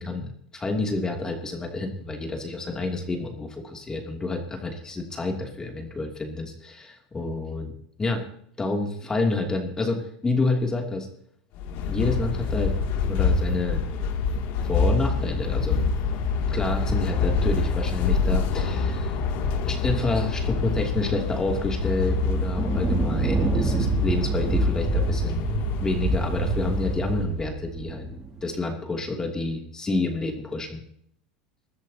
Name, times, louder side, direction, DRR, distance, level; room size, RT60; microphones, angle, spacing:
voice 1, 0.0-7.7 8.0-8.2 8.6-11.1 11.9-12.7 13.1-13.8 14.6-15.8 16.5-19.1 19.6-25.4 25.8-28.1 28.4-30.8, left 3 dB, 15° left, 2 dB, 2.8 m, -29 dB
sound 1, 11.5-27.3, left 4 dB, 60° left, 2.6 m, -26 dB
sound 2, 22.4-28.4, right 3 dB, 20° right, 6.6 m, -26 dB
21.5 x 13.5 x 2.9 m, 0.67 s
supercardioid pair, 110°, 4 cm